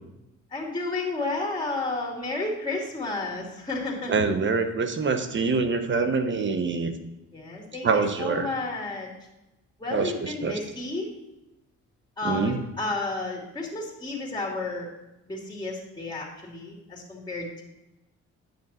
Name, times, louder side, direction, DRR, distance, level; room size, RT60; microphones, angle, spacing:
voice 1, 0.5-4.1 7.3-9.1 9.8-11.1 12.2-14.9 15.3-17.6, left 2 dB, 15° left, -2 dB, 2.7 m, -32 dB
voice 2, 4.1-6.9 7.8-8.5 9.9-10.5 12.2-12.6, right 4 dB, 40° right, 8 dB, 1.0 m, -25 dB
9.4 x 6.7 x 4.3 m, 0.94 s
cardioid pair, 90°, 30 cm